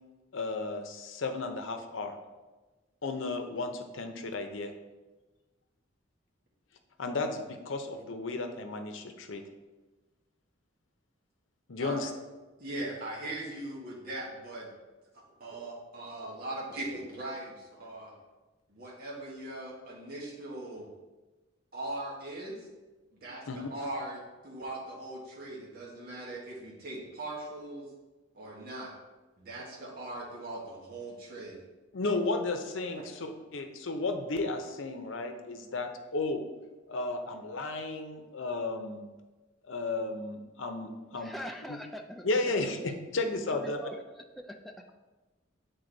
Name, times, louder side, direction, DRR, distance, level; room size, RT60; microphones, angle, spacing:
voice 1, 0.3-2.1 3.0-4.7 7.0-9.4 11.7-12.1 23.5-23.6 31.9-36.4 36.9-39.1 39.6-41.3 41.7-41.8 42.2-43.8, left 3 dB, 80° left, 6 dB, 0.7 m, -33 dB
voice 2, 12.6-14.7 15.1-18.1 18.7-20.9 21.7-22.7 23.1-27.9 28.3-28.9 29.4-31.6, right 1 dB, 50° right, -5 dB, 1.6 m, -40 dB
voice 3, 41.1-42.5 43.5-44.9, equal, ahead, 3 dB, 0.4 m, -43 dB
8.0 x 4.0 x 3.9 m, 1.2 s
head